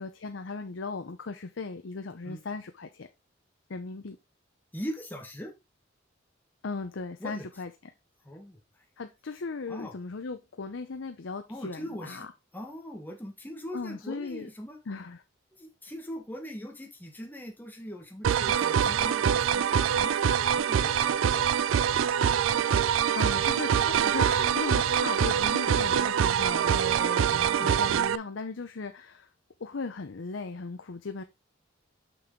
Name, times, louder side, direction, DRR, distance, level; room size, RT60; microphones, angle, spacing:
voice 1, 0.0-3.1 3.7-4.2 6.6-7.7 9.0-12.3 13.7-14.5 14.9-15.2 22.5-29.3 29.6-31.2, left 4 dB, 70° left, 0.6 m, -37 dB
voice 2, 4.7-5.5 7.2-7.4 8.2-8.6 9.7-9.9 11.5-12.3 12.5-14.8 15.5-21.6 25.7-25.9 27.3-27.8, equal, 10° left, 1.3 m, -41 dB
sound 1, 18.2-28.2, right 8 dB, 85° right, 0.4 m, -25 dB
6.2 x 6.2 x 3.7 m
head